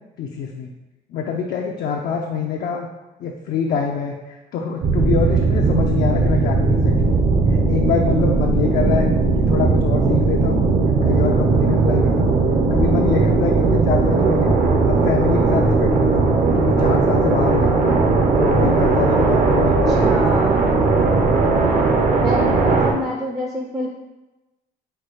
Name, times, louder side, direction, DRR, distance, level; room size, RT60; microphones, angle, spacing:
voice 1, 0.2-0.7 1.1-2.9 3.2-7.1 7.7-9.1 9.4-10.7 11.0-12.4 12.7-14.5 14.8-16.3 16.6-18.0 18.4-20.4, left 6 dB, 60° left, 0 dB, 0.5 m, -25 dB
sound 1, 4.8-22.9, right 3 dB, 55° right, 0.8 m, -17 dB
voice 2, 19.9-20.7 22.2-23.9, right 1 dB, 15° right, -1 dB, 0.5 m, -27 dB
4.4 x 2.3 x 4.7 m, 1.1 s
cardioid pair, 110°, 17 cm